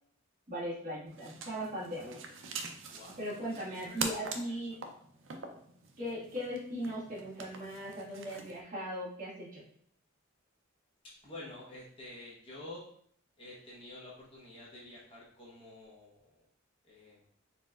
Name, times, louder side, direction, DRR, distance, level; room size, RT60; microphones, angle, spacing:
voice 1, 0.5-2.2 3.2-4.8 6.0-9.6, equal, 40° right, -8 dB, 1.8 m, -38 dB
sound 1, 1.1-8.6, right 4 dB, 70° right, 0.5 m, -44 dB
voice 2, 3.8-4.4 11.2-12.8 13.4-16.1 16.8-17.2, left 2 dB, 25° left, -6 dB, 1.0 m, -49 dB
4.3 x 3.9 x 2.4 m, 0.63 s
head